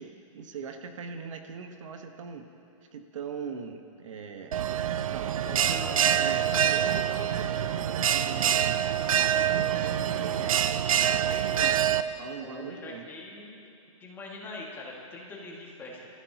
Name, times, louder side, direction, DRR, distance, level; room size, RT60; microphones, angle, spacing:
voice 1, 0.0-2.4 2.9-4.5 5.1-5.4 6.1-8.8 9.4-13.0, right 6 dB, 65° right, 5 dB, 1.3 m, -41 dB
Bell, 4.5-12.0, right 9 dB, 80° right, 0.6 m, -26 dB
voice 2, 5.5-7.0 8.9-9.9 12.4-13.6 14.0-16.1, left 2 dB, 10° left, -3 dB, 2.0 m, -43 dB
24.5 x 14.5 x 2.9 m, 2.6 s
hypercardioid pair, 155°, 17 cm